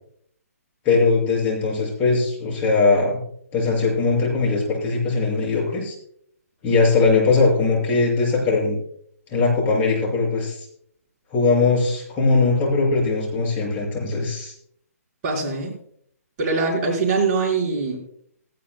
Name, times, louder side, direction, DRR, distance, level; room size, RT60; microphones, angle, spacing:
voice 1, 0.8-3.2 3.5-5.9 6.6-8.8 9.3-10.7 11.3-14.5, left 3 dB, 20° left, -3 dB, 6.5 m, -20 dB
voice 2, 15.2-15.7 16.4-18.0, right 4 dB, 30° right, -3 dB, 4.8 m, -22 dB
18.0 x 16.5 x 2.2 m, 0.67 s
hypercardioid pair, 150°, 8 cm